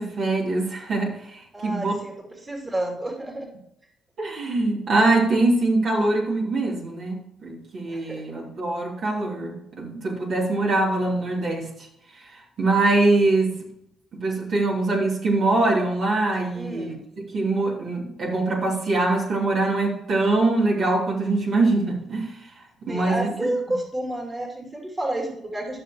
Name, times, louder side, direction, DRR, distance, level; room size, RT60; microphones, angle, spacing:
voice 1, 0.0-1.9 4.2-11.9 12.2-13.5 14.1-16.9 17.3-22.3 22.8-23.5, right 2 dB, 60° right, -3 dB, 3.0 m, -23 dB
voice 2, 1.5-3.5 7.9-8.4 16.5-17.0 22.9-25.8, right 1 dB, 25° right, 1 dB, 2.5 m, -30 dB
14.5 x 6.5 x 3.0 m, 0.77 s
hypercardioid pair, 50°, 0 cm